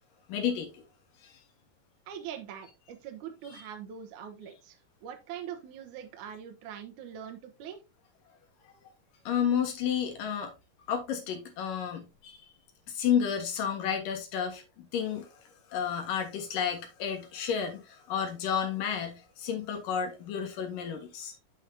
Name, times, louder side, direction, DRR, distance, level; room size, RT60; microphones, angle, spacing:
voice 1, 0.3-0.8 1.2-1.4 3.5-3.6 8.6-8.7 9.2-10.5 10.9-12.5 12.9-15.4 15.7-21.3, left 8 dB, 70° left, 3.1 m, -31 dB
voice 2, 2.1-7.8, right 9 dB, 70° right, 2.2 m, -43 dB
9.1 x 5.9 x 2.7 m
omnidirectional pair, 4.1 m